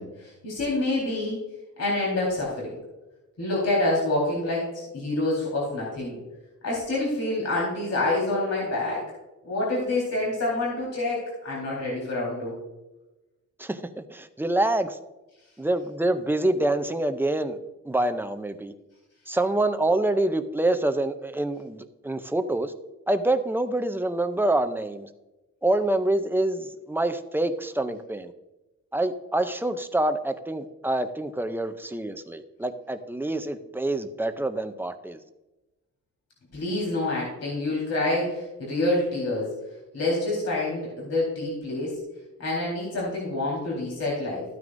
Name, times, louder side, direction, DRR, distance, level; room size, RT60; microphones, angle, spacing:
voice 1, 0.0-1.5 1.8-2.8 3.4-6.2 6.6-9.0 9.4-12.6 36.5-39.6 39.9-42.0 42.4-44.4, left 2 dB, 60° left, -4 dB, 4.0 m, -27 dB
voice 2, 14.1-15.0 15.6-17.6 17.9-18.7 19.3-22.7 23.1-25.1 25.6-28.3 28.9-35.2, right 1 dB, 5° right, 8 dB, 0.5 m, -26 dB
14.0 x 9.4 x 2.6 m, 1.0 s
wide cardioid pair, 175°, 30 cm